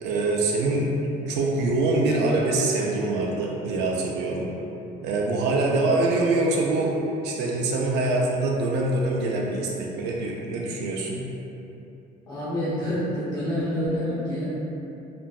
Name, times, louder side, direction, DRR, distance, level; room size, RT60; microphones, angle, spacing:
voice 1, 0.0-0.9 1.3-4.5 5.0-6.9 7.2-11.2, right 2 dB, 85° right, -2 dB, 0.4 m, -24 dB
voice 2, 12.3-14.4, equal, 25° left, -11 dB, 0.7 m, -27 dB
3.0 x 2.5 x 2.4 m, 2.9 s
cardioid pair, 110°, 17 cm